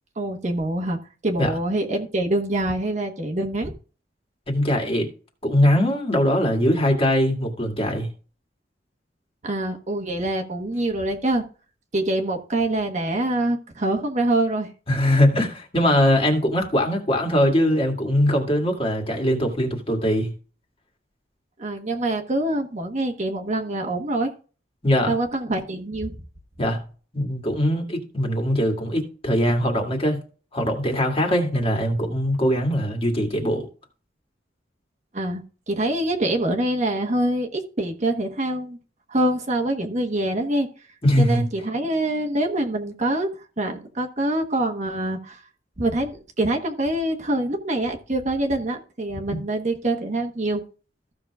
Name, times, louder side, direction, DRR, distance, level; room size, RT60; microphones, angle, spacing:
voice 1, 0.2-1.0 1.2-3.7 9.4-11.4 11.9-14.7 21.6-24.3 25.1-26.1 35.1-38.8 39.1-40.7 41.2-43.3 43.6-45.4 45.8-50.6, right 1 dB, 40° right, 1.2 m, -25 dB
voice 2, 4.5-5.1 5.4-8.1 14.9-20.3 24.8-25.1 26.6-26.8 27.1-30.2 30.5-33.7 41.0-41.5 49.3-49.4, equal, 30° left, 2.1 m, -21 dB
15.0 x 6.3 x 2.4 m
head